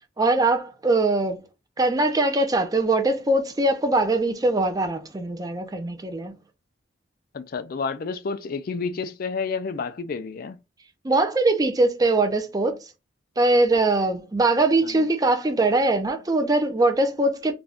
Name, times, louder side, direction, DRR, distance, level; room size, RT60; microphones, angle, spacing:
voice 1, 0.2-1.4 1.8-6.3 11.0-12.9 13.4-17.5, right 2 dB, 20° right, 0.4 m, -22 dB
voice 2, 7.3-10.6 14.8-15.1, left 5 dB, 45° left, 0.4 m, -30 dB
2.5 x 2.2 x 3.3 m
head